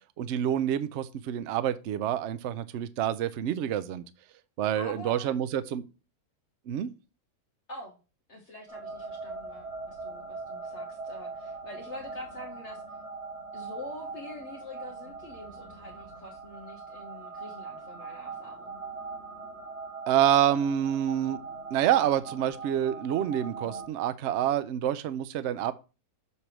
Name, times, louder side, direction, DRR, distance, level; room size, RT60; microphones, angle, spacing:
voice 1, 0.2-4.0 4.6-5.8 6.7-6.9 20.1-21.4 21.7-25.7, right 10 dB, 65° right, 0.7 m, -27 dB
voice 2, 4.7-5.3 7.7-8.0 8.3-12.8 13.5-18.8, left 1 dB, 50° left, 1.5 m, -45 dB
sound 1, 8.7-23.9, right 4 dB, 45° right, 1.4 m, -41 dB
6.9 x 3.4 x 6.0 m
omnidirectional pair, 1.6 m